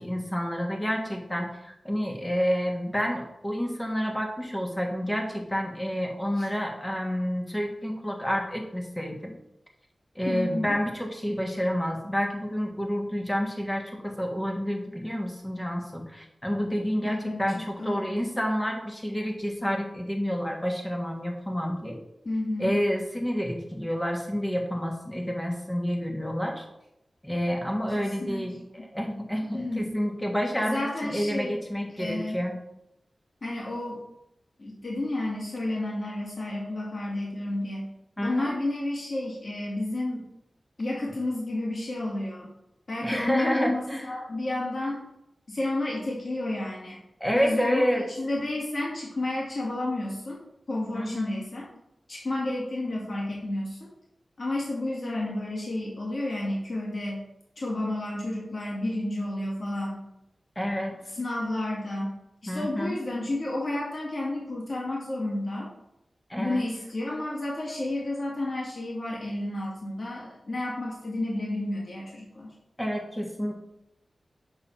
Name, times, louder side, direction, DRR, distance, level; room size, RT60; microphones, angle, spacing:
voice 1, 0.0-9.4 10.1-22.0 22.6-26.6 27.2-28.5 28.9-32.6 38.2-38.5 43.0-44.1 47.2-48.0 50.9-51.4 60.5-61.0 62.5-62.9 66.3-66.6 72.8-73.5, equal, 10° left, 1 dB, 1.5 m, -29 dB
voice 2, 10.3-10.8 17.0-18.2 22.2-22.8 27.9-28.6 29.4-29.8 30.6-31.5 31.9-32.4 33.4-34.0 34.6-37.9 38.2-40.3 40.8-42.5 42.9-45.1 45.5-47.0 47.4-47.9 48.2-50.4 50.7-51.7 52.1-53.9 54.4-57.2 57.6-60.1 61.1-65.7 66.4-72.5, left 1 dB, 55° left, -4 dB, 2.1 m, -31 dB
7.1 x 3.9 x 5.6 m, 0.86 s
wide cardioid pair, 85°, 0 cm